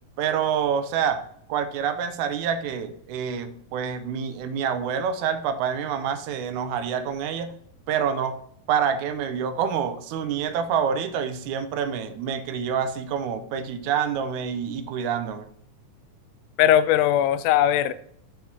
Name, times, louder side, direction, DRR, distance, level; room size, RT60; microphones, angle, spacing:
voice 1, 0.2-1.2 1.5-7.5 7.9-8.4 8.7-15.5, right 7 dB, 80° right, 2.0 m, -27 dB
voice 2, 16.6-17.9, left 11 dB, 90° left, 2.1 m, -19 dB
6.8 x 5.4 x 4.5 m
omnidirectional pair, 3.6 m